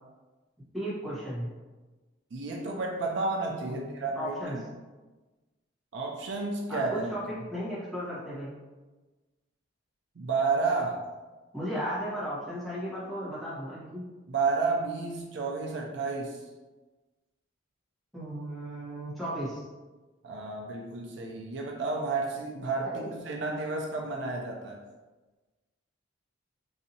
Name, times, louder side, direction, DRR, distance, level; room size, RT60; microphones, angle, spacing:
voice 1, 0.7-1.5 3.6-3.9 4.1-4.6 6.7-8.5 11.5-14.0 18.1-19.6 22.8-23.1, equal, ahead, -10 dB, 1.1 m, -35 dB
voice 2, 2.3-4.6 5.9-7.1 10.2-11.0 14.3-16.4 20.2-24.8, right 4 dB, 60° right, 0 dB, 0.4 m, -31 dB
4.1 x 2.6 x 2.7 m, 1.2 s
head